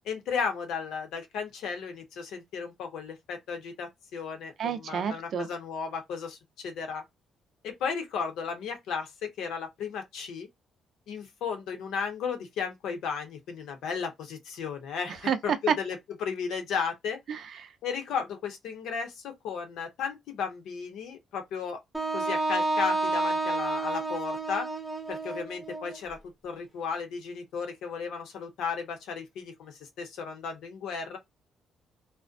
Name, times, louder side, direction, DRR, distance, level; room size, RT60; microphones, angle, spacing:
voice 1, 0.0-7.0 7.6-10.5 11.1-17.2 17.8-21.8 22.1-24.7 25.1-26.2 26.4-31.2, left 6 dB, 85° left, 0.8 m, -34 dB
voice 2, 4.6-5.5 15.3-15.4 15.7-15.8 17.3-17.7, right 7 dB, 65° right, 0.4 m, -29 dB
Wind instrument woodwind instrument, 21.9-26.0, right 2 dB, 10° right, 0.7 m, -30 dB
2.4 x 2.1 x 2.5 m
cardioid pair, 90°, 0 cm